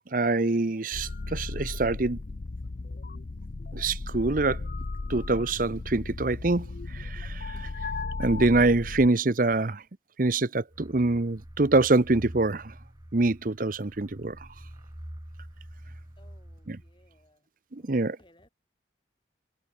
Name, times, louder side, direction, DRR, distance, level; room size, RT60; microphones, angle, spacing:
voice 1, 0.1-2.2 3.7-4.6 5.1-6.7 6.9-7.6 8.2-9.8 10.2-12.7 13.1-14.4 16.7-16.8 17.7-18.2, right 2 dB, 50° right, 0.8 m, -25 dB
sound 1, 0.9-9.1, left 3 dB, 50° left, 0.6 m, -36 dB
sound 2, 10.7-17.2, equal, 20° right, 1.5 m, -46 dB
voice 2, 16.2-17.4 17.8-18.5, left 1 dB, 25° left, 6.9 m, -61 dB
head